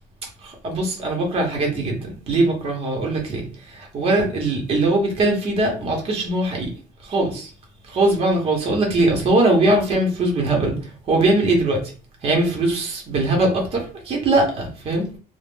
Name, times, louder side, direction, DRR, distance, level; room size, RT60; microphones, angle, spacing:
voice 1, 0.4-6.7 7.0-7.5 7.8-11.9 12.2-15.2, right 2 dB, 35° right, 1.0 m, -21 dB
2.5 x 2.2 x 3.5 m
cardioid pair, 150°, 16 cm